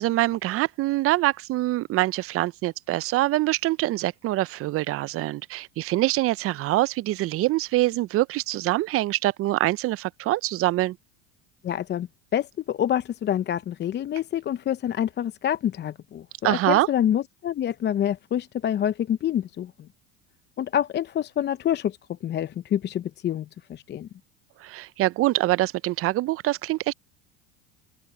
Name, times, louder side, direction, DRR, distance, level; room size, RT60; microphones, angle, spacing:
voice 1, 0.0-11.0 16.4-16.9 24.6-26.9, right 17 dB, 40° right, 0.6 m, -24 dB
voice 2, 11.6-19.7 20.6-22.0 22.2-24.1, left 10 dB, 30° left, 0.7 m, -27 dB
open air
supercardioid pair, 100°, 34 cm